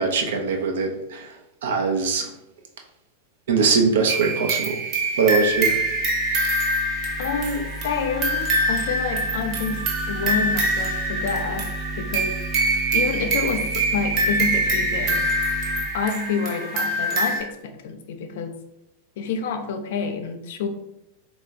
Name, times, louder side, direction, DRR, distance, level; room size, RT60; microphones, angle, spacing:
voice 1, 0.0-1.3 1.6-2.3 3.5-4.8 5.2-5.7, right 4 dB, 60° right, 3 dB, 0.8 m, -22 dB
sound 1, 4.1-17.4, right 2 dB, 35° right, 1.2 m, -24 dB
sound 2, 5.1-15.9, right 2 dB, 5° left, 0.6 m, -35 dB
voice 2, 7.2-11.7 11.9-12.3 12.9-15.2 15.9-18.5 19.2-20.7, left 5 dB, 55° left, 6 dB, 0.6 m, -28 dB
4.1 x 2.9 x 4.0 m, 0.86 s
figure-of-eight pair, 90°, 0 cm